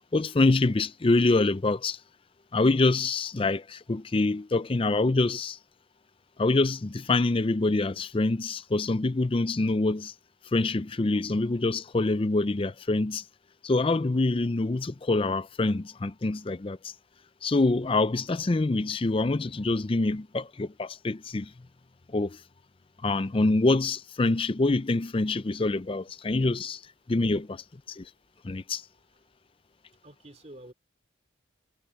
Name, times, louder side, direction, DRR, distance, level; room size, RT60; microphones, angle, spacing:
voice 1, 0.1-2.0 2.5-5.6 6.4-10.1 10.5-13.2 13.6-16.9 17.4-21.5 22.1-22.4 23.0-26.8 27.1-28.1 28.4-28.8, left 2 dB, 30° left, 0.5 m, -25 dB
voice 2, 26.0-26.8 27.3-27.6 28.0-28.1 28.3-28.4 29.0-29.2 30.0-30.7, right 1 dB, 35° right, 3.4 m, -52 dB
head